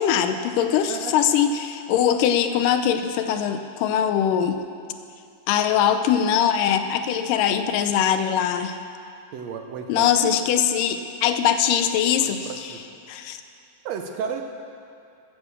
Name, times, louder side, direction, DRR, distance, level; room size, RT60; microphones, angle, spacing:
voice 1, 0.0-4.6 5.5-8.8 9.9-12.7 13.1-13.4, left 9 dB, 85° left, 9 dB, 2.3 m, -22 dB
voice 2, 9.3-10.3 12.2-12.8 13.8-14.4, right 7 dB, 70° right, 5 dB, 1.8 m, -33 dB
14.0 x 9.7 x 7.2 m, 2.5 s
omnidirectional pair, 3.8 m